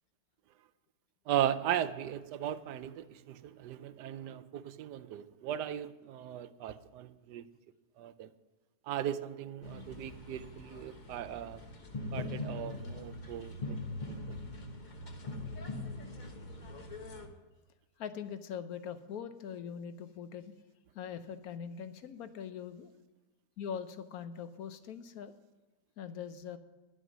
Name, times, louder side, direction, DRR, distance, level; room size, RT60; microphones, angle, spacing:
voice 1, 1.3-7.5 8.0-8.3 8.8-11.6 12.1-13.8 14.3-14.4, right 11 dB, 80° right, 1.2 m, -37 dB
sound 1, 9.6-17.3, left 2 dB, 30° left, 1.0 m, -42 dB
voice 2, 18.0-20.5 20.9-22.9 23.6-25.3 26.0-26.6, left 7 dB, 65° left, 1.2 m, -42 dB
11.0 x 8.2 x 6.1 m
omnidirectional pair, 1.8 m